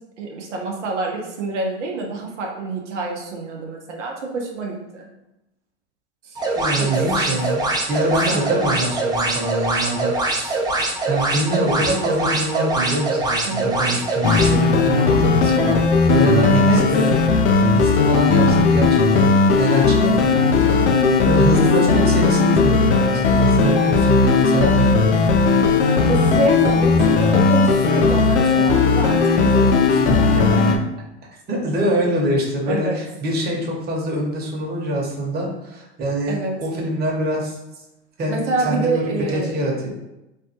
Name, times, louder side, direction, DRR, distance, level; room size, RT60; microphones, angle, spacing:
voice 1, 0.2-5.1 6.2-6.4 6.8-7.0 8.3-8.5 13.5-13.9 16.5-16.8 21.6-22.5 26.1-30.5 32.7-33.0 36.3-36.5 38.3-39.6, right 3 dB, 90° right, 0 dB, 0.7 m, -27 dB
sound 1, 6.4-14.5, right 2 dB, 10° right, 0.4 m, -23 dB
voice 2, 6.5-7.6 7.9-10.6 11.1-17.2 17.7-20.9 21.2-25.6 26.2-26.3 30.4-30.8 31.5-37.6 38.2-39.9, right 1 dB, 30° right, -1 dB, 1.0 m, -24 dB
sound 2, 14.2-30.8, left 4 dB, 75° left, 0.5 m, -16 dB
3.2 x 2.2 x 2.8 m, 0.93 s
hypercardioid pair, 95°, 35 cm